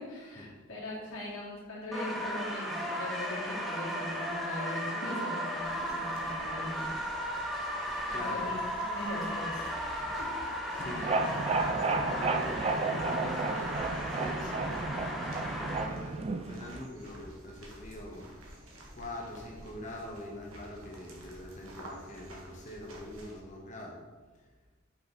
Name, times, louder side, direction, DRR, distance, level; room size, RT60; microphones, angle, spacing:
voice 1, 0.0-6.9 8.1-8.6 8.9-10.3, left 1 dB, 70° left, -5 dB, 2.0 m, -40 dB
sound 1, 1.9-15.8, equal, ahead, 1.2 m, -35 dB
sound 2, 5.6-23.4, equal, 85° right, 1.5 m, -51 dB
voice 2, 8.1-8.5 10.7-18.6 18.9-24.0, left 1 dB, 35° left, -1 dB, 1.3 m, -44 dB
sound 3, 10.8-16.9, right 3 dB, 30° right, 0.3 m, -32 dB
6.2 x 5.3 x 4.0 m, 1.3 s
head